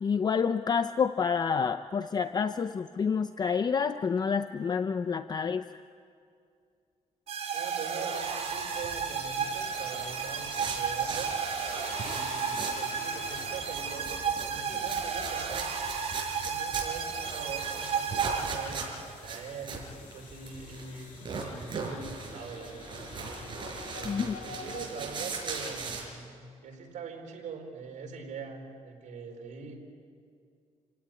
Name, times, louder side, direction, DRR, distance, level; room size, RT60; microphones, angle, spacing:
voice 1, 0.0-5.6 24.0-24.4, left 6 dB, 35° left, 10 dB, 0.6 m, -28 dB
sound 1, 7.3-19.1, right 6 dB, 55° right, 4.3 m, -33 dB
voice 2, 7.5-11.4 12.0-15.7 16.4-23.1 23.9-29.7, right 5 dB, 80° right, 1 dB, 4.4 m, -42 dB
sound 2, 8.1-24.9, left 6 dB, 85° left, 2.4 m, -48 dB
sound 3, 8.6-12.9 13.2-26.0, right 4 dB, 40° right, 5.6 m, -39 dB
29.0 x 17.0 x 9.2 m, 2.4 s
cardioid pair, 135°, 13 cm